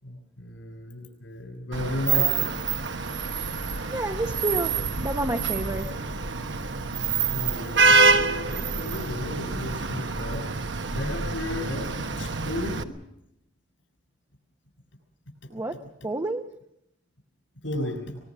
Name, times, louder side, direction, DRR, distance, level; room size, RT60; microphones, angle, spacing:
voice 1, 0.0-2.6 7.3-10.5 10.9-12.9 17.6-18.2, left 1 dB, 75° left, 7.0 m, -34 dB
Vehicle horn car horn honking / Traffic noise roadway noise, 1.7-12.8, right 4 dB, 65° right, 1.2 m, -26 dB
voice 2, 3.9-6.0 15.5-16.6, right 2 dB, 20° right, 0.9 m, -30 dB
23.5 x 21.0 x 6.2 m
head